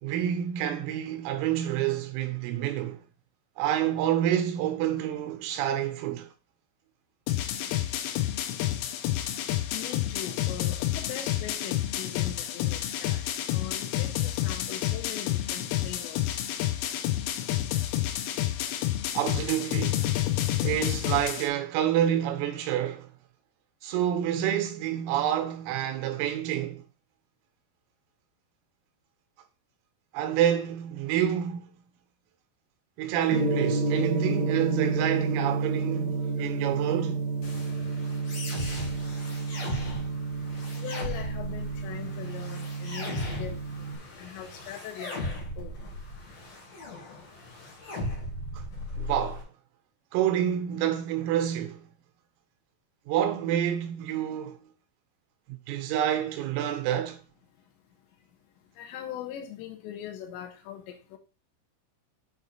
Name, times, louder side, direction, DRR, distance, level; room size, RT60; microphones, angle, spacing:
voice 1, 0.0-3.0 3.6-6.3 19.2-20.1 20.6-23.1 23.8-26.8 30.1-31.8 33.0-37.3 48.5-48.6 49.0-49.5 50.1-51.9 53.1-54.6 55.5-57.2, right 11 dB, 90° right, 3.6 m, -28 dB
sound 1, 7.3-21.5, left 13 dB, 90° left, 3.4 m, -29 dB
voice 2, 9.7-16.4 40.8-43.9 44.2-45.7 58.8-61.2, left 10 dB, 70° left, 3.0 m, -41 dB
Gong, 33.3-44.0, right 3 dB, 65° right, 1.8 m, -30 dB
sound 2, 37.4-49.4, left 2 dB, 55° left, 1.9 m, -38 dB
8.1 x 3.4 x 4.3 m
omnidirectional pair, 5.9 m